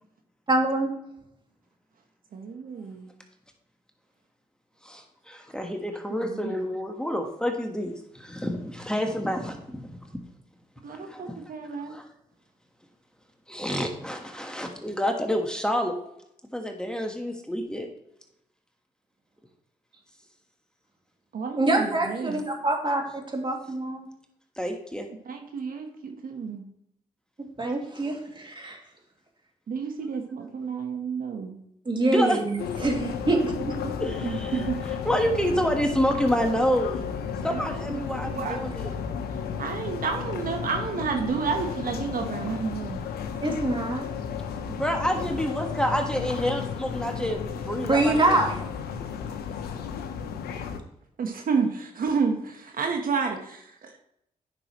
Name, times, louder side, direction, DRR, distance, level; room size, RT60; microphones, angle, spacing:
voice 1, 0.5-0.9 21.6-23.0 23.3-24.1 27.6-28.8 31.9-33.5 33.8-33.9 43.4-44.1 47.8-48.5, right 2 dB, 30° right, 1 dB, 2.5 m, -25 dB
voice 2, 2.3-3.1 6.2-6.4 10.8-12.0 21.3-22.4 25.3-26.6 29.7-31.6 34.2-34.8 37.5-38.0 38.3-38.6 39.1-39.2 39.6-43.0 51.2-54.0, right 5 dB, 65° right, 4 dB, 1.2 m, -30 dB
voice 3, 4.8-10.0 10.9-11.4 11.8-12.1 13.5-15.9 16.5-17.9 24.6-25.1 32.0-32.4 34.0-34.7 35.0-37.1 37.4-38.9 44.7-48.4, equal, 5° left, 3 dB, 1.4 m, -28 dB
sound 1, 32.6-50.8, left 7 dB, 85° left, 0.9 m, -33 dB
9.9 x 6.1 x 3.1 m, 0.77 s
supercardioid pair, 55°, 16 cm